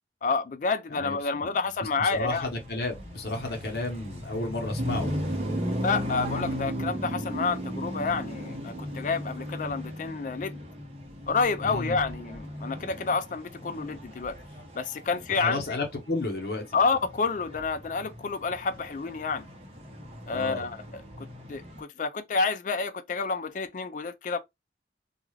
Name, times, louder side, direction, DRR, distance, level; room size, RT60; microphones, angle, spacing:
voice 1, 0.2-2.5 5.8-10.6 11.3-14.4 14.7-15.6 16.7-19.5 20.3-24.4, left 4 dB, 45° left, 0.4 m, -29 dB
voice 2, 0.9-5.1 11.6-12.0 15.2-16.8 20.3-20.7, left 2 dB, 60° left, 0.9 m, -33 dB
sound 1, 2.1-21.8, left 1 dB, 35° right, 0.9 m, -37 dB
sound 2, 4.8-9.7, right 3 dB, 55° right, 0.4 m, -38 dB
2.4 x 2.3 x 3.1 m
head